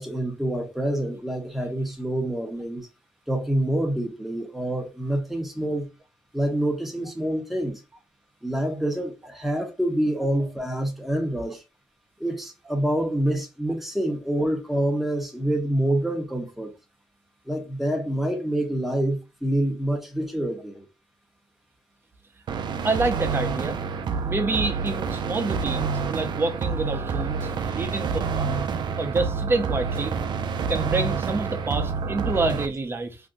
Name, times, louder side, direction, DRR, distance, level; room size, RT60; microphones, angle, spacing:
voice 1, 0.0-2.9 3.3-5.9 6.3-7.8 8.4-11.6 12.2-16.7 17.5-20.9, right 1 dB, ahead, 0.9 m, -26 dB
Morphed Drum Loop, 22.5-32.7, right 5 dB, 60° right, 0.4 m, -28 dB
voice 2, 22.8-23.8 24.2-28.6 29.0-30.1 30.7-33.2, right 3 dB, 25° right, 0.7 m, -27 dB
2.6 x 2.2 x 3.7 m
cardioid pair, 85°, 8 cm